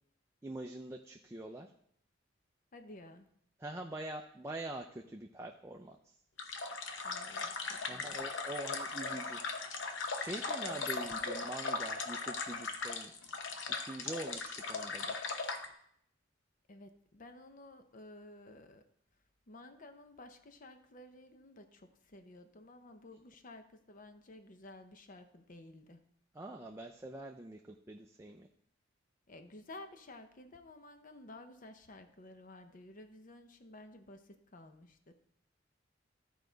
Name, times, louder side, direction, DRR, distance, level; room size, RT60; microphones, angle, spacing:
voice 1, 0.4-1.7 3.6-6.1 7.9-9.4 10.1-13.1 13.7-15.2 26.3-28.5, right 1 dB, 15° right, 3 dB, 0.4 m, -44 dB
voice 2, 2.7-3.3 7.0-8.3 10.7-10.9 16.7-18.8 19.5-26.0 29.3-35.1, left 2 dB, 45° left, 8 dB, 0.7 m, -53 dB
sound 1, 6.4-15.7, left 4 dB, 75° left, 0.9 m, -38 dB
13.5 x 4.8 x 3.9 m, 0.70 s
head